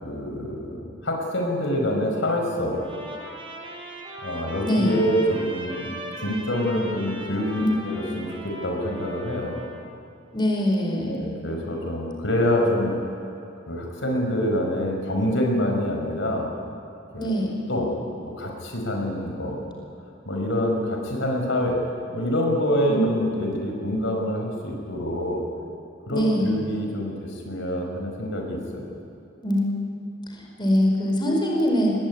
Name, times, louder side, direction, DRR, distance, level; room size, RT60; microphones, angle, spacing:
voice 1, 0.0-2.8 4.2-5.9 6.2-9.6 11.1-13.0 13.7-16.5 17.1-17.3 17.7-17.9 18.4-19.6 20.3-21.8 22.1-25.4 26.1-28.9, equal, 70° left, 1 dB, 5.3 m, -26 dB
Trumpet, 2.7-9.9, equal, 25° right, 4.8 m, -39 dB
voice 2, 4.6-5.0 7.6-7.7 10.3-11.2 17.2-17.6 22.9-23.0 26.1-26.5 29.4-29.7 30.3-31.9, equal, 25° left, 0 dB, 4.8 m, -23 dB
25.5 x 20.5 x 9.8 m, 2.7 s
head